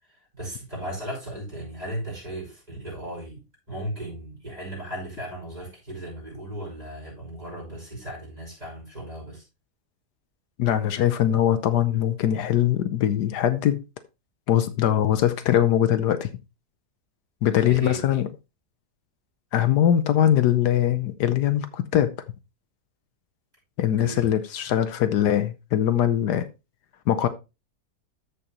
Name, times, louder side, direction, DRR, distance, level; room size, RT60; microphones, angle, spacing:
voice 1, 0.3-9.4 17.5-17.9 24.0-24.3, right 1 dB, 25° right, 5.8 m, -36 dB
voice 2, 10.6-13.8 14.5-16.3 17.4-18.3 19.5-22.1 23.8-26.4 27.1-27.3, left 10 dB, 80° left, 1.4 m, -22 dB
13.5 x 5.1 x 2.9 m
omnidirectional pair, 1.7 m